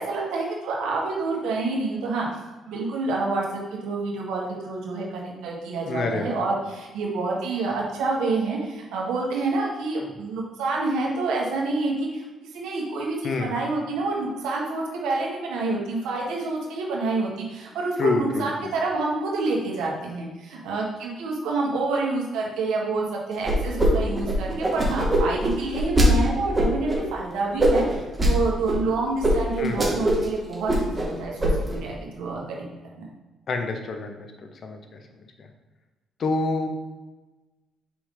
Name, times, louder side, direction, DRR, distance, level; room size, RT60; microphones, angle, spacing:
voice 1, 0.0-2.3 2.7-12.2 12.5-32.7 33.0-33.1, right 3 dB, 90° right, -2 dB, 1.6 m, -28 dB
voice 2, 5.9-6.4 13.2-13.5 18.0-18.7 29.6-29.8 33.5-34.3 34.6-34.8 35.4-35.5 36.2-36.7, left 3 dB, 55° left, 5 dB, 0.9 m, -27 dB
sound 1, 23.4-23.9 24.1-26.1 26.5-27.0 27.6-28.3 28.7-28.8 29.2-29.3 29.6-30.3 30.5-31.1 31.4-31.8, right 1 dB, 20° right, 1.8 m, -21 dB
5.9 x 5.0 x 3.9 m, 1.2 s
cardioid pair, 90°, 0 cm